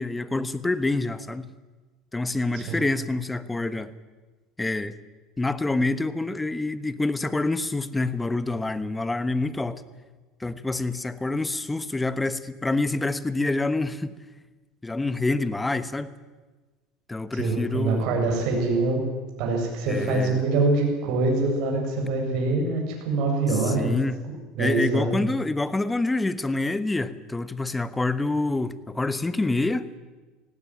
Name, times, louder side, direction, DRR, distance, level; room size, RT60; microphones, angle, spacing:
voice 1, 0.0-1.5 2.1-3.9 4.6-4.9 5.4-9.8 10.4-14.1 14.8-16.1 17.1-18.0 19.9-20.4 23.5-24.2 24.6-29.9, left 2 dB, 10° left, 14 dB, 1.2 m, -27 dB
voice 2, 17.3-19.0 19.4-23.9 24.2-25.2, right 3 dB, 65° right, 1 dB, 7.4 m, -24 dB
18.0 x 17.0 x 10.0 m, 1.3 s
supercardioid pair, 110°, 0 cm